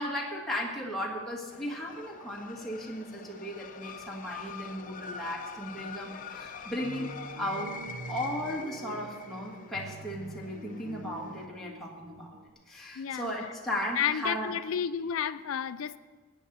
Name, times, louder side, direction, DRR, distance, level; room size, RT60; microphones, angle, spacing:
voice 1, 0.0-7.1 7.4-7.8 8.1-12.4 12.7-14.5, equal, ahead, 1.8 m, -36 dB
sound 1, 1.5-11.5, left 5 dB, 40° left, 0.7 m, -45 dB
sound 2, 6.8-12.5, right 2 dB, 70° right, 0.8 m, -45 dB
voice 2, 13.0-13.3 14.0-16.0, left 8 dB, 70° left, 0.4 m, -31 dB
18.0 x 9.4 x 4.1 m
head